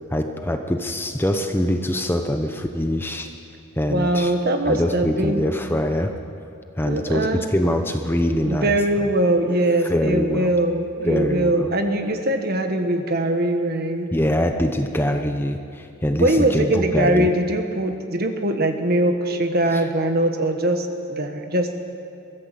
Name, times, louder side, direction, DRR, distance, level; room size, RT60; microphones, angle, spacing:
voice 1, 0.1-3.3 3.8-4.3 4.7-6.1 6.8-8.8 9.9-10.5 11.1-11.7 14.1-17.3 19.7-19.8, left 1 dB, 10° left, 5 dB, 0.8 m, -23 dB
voice 2, 3.9-5.5 6.9-7.4 8.4-14.1 16.2-21.8, right 1 dB, 45° right, 6 dB, 1.5 m, -22 dB
22.5 x 15.0 x 7.7 m, 2.6 s
head